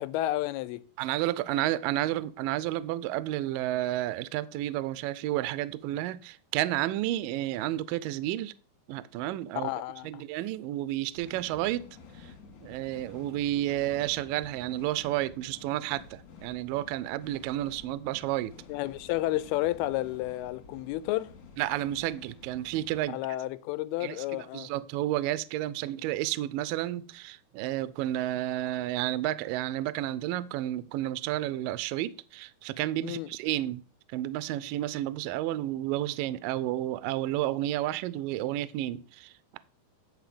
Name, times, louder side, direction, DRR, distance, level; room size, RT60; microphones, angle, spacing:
voice 1, 0.0-0.9 9.6-10.2 18.7-21.3 23.1-24.7 33.0-33.3, left 16 dB, 80° left, 2.5 m, -31 dB
voice 2, 1.0-8.5 8.9-9.7 10.0-11.9 12.2-12.3 12.6-18.5 21.6-23.2 24.0-33.8 34.1-39.6, right 14 dB, 85° right, 2.0 m, -31 dB
sound 1, 11.1-23.0, left 4 dB, 55° left, 2.7 m, -51 dB
10.5 x 4.2 x 6.8 m
omnidirectional pair, 4.5 m